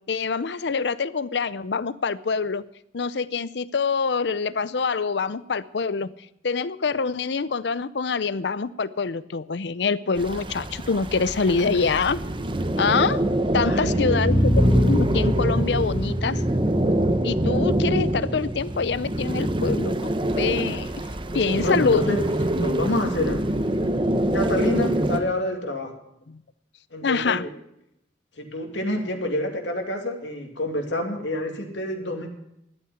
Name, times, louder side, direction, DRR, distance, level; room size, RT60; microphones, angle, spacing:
voice 1, 0.1-2.6 2.9-6.1 6.4-12.2 12.8-13.2 13.5-16.4 17.2-20.9 21.3-22.2 27.0-27.4, left 5 dB, 70° left, 17 dB, 0.6 m, -25 dB
sound 1, 10.2-25.2, right 1 dB, 25° right, 0.9 m, -26 dB
voice 2, 11.6-12.0 13.6-14.4 21.6-22.2 22.6-23.4 24.3-25.9 26.9-27.5 28.4-32.3, left 1 dB, 85° left, 3 dB, 2.4 m, -28 dB
sound 2, 13.8-19.7, equal, 5° right, 2.6 m, -25 dB
12.0 x 8.8 x 9.3 m, 0.79 s
head